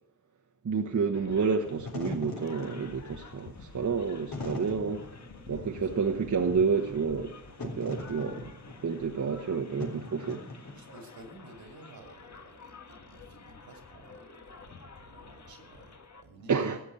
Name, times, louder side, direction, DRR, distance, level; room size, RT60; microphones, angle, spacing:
voice 1, 0.6-5.0 5.5-7.3 7.6-8.5 8.8-10.4 16.5-16.8, right 5 dB, 55° right, 1.3 m, -29 dB
sound 1, 1.1-16.2, left 4 dB, 50° left, 1.7 m, -50 dB
Wind / Fire, 1.6-11.1, left 2 dB, 70° left, 3.7 m, -42 dB
voice 2, 5.5-5.9 10.7-16.5, right 2 dB, 85° right, 2.9 m, -53 dB
14.0 x 8.3 x 8.3 m
cardioid pair, 65°, 36 cm